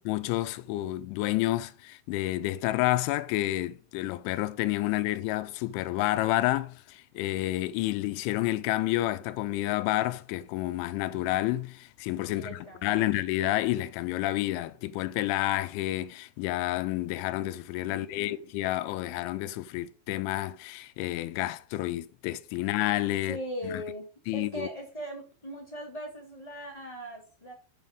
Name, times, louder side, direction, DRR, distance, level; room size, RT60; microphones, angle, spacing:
voice 1, 0.1-23.4 23.6-23.8 24.3-24.7, left 16 dB, 85° left, 2.9 m, -29 dB
voice 2, 12.3-13.2 17.8-18.4 23.2-24.1 24.3-27.5, equal, 15° left, 1.5 m, -40 dB
7.4 x 5.9 x 5.2 m
omnidirectional pair, 5.5 m